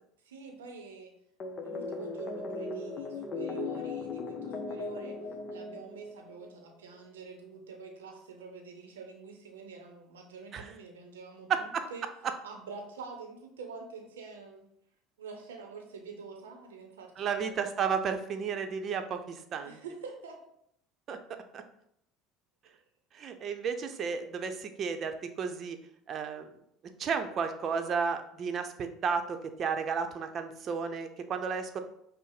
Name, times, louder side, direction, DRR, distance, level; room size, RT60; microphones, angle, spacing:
voice 1, 0.3-1.1 1.6-5.2 5.5-11.5 11.9-12.1 12.4-14.7 15.2-17.6 19.6-20.4, right 5 dB, 90° right, 3 dB, 0.6 m, -46 dB
sound 1, 1.4-6.5, left 3 dB, 45° left, 0.6 m, -38 dB
voice 2, 11.5-11.9 17.2-19.8 21.1-21.2 21.5-21.6 23.1-25.8 26.1-26.5 27.0-31.8, right 6 dB, 45° right, 7 dB, 0.6 m, -33 dB
5.5 x 2.0 x 4.8 m, 0.73 s
hypercardioid pair, 75°, 0 cm